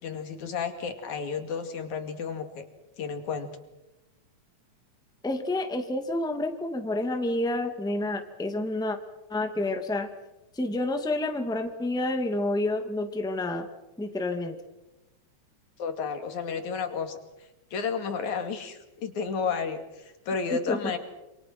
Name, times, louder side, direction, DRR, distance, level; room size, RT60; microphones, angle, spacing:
voice 1, 0.0-2.7 3.0-3.5 15.8-17.2 17.7-21.0, left 5 dB, 80° left, 7 dB, 3.8 m, -32 dB
voice 2, 5.2-9.0 9.3-10.1 10.5-13.7 14.0-14.6 20.7-20.9, left 2 dB, ahead, 6 dB, 1.9 m, -29 dB
27.5 x 27.0 x 6.2 m, 0.98 s
omnidirectional pair, 3.3 m